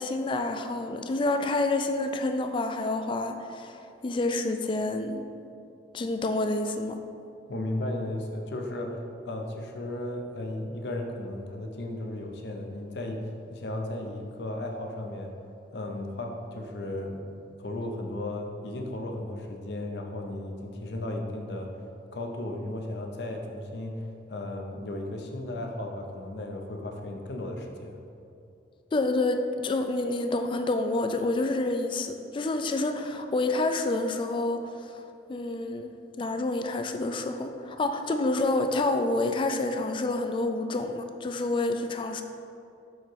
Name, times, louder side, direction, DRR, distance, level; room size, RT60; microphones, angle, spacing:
voice 1, 0.0-5.3 5.9-7.0 28.9-35.0 35.3-42.2, left 2 dB, 30° left, 7 dB, 0.3 m, -28 dB
voice 2, 7.5-15.3 15.7-17.2 17.6-21.7 22.1-28.0, left 1 dB, 70° left, 2 dB, 0.7 m, -35 dB
7.2 x 3.0 x 4.6 m, 2.6 s
head